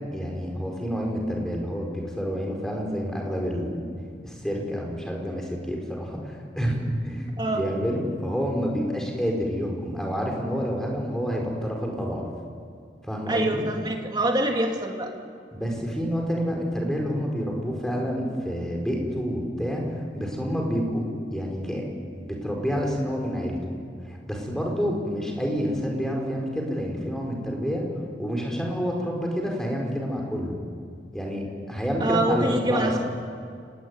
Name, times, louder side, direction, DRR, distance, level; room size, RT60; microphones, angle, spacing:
voice 1, 0.0-3.7 4.2-12.2 13.1-13.6 15.5-21.8 22.2-23.7 24.0-27.8 28.2-30.6 31.1-32.9, equal, 5° left, 0 dB, 5.0 m, -28 dB
voice 2, 13.3-15.1 32.0-33.0, right 1 dB, 25° right, 1 dB, 2.9 m, -25 dB
30.0 x 19.5 x 9.8 m, 2.2 s
head